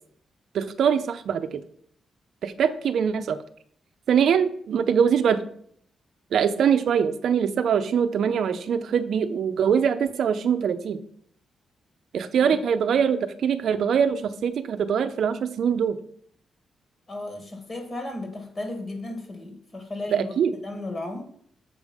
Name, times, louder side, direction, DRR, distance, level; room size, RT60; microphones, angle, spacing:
voice 1, 0.5-1.6 2.4-3.4 4.1-5.4 6.3-11.0 12.1-16.0 20.1-20.5, right 7 dB, 70° right, 10 dB, 0.5 m, -23 dB
voice 2, 17.1-20.3 20.6-21.3, left 2 dB, 30° left, 4 dB, 2.0 m, -34 dB
7.3 x 4.9 x 5.2 m, 0.63 s
wide cardioid pair, 145°, 0 cm